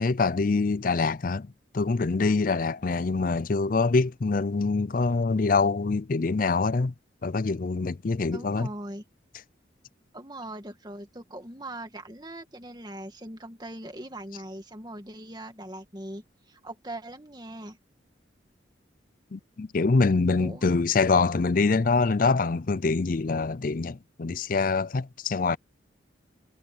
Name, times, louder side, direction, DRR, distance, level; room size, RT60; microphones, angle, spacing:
voice 1, 0.0-6.9 7.2-8.7 19.3-25.6, left 4 dB, 45° left, 0.5 m, -25 dB
voice 2, 8.3-9.0 10.1-17.8 20.4-20.6, right 1 dB, 20° right, 2.1 m, -41 dB
head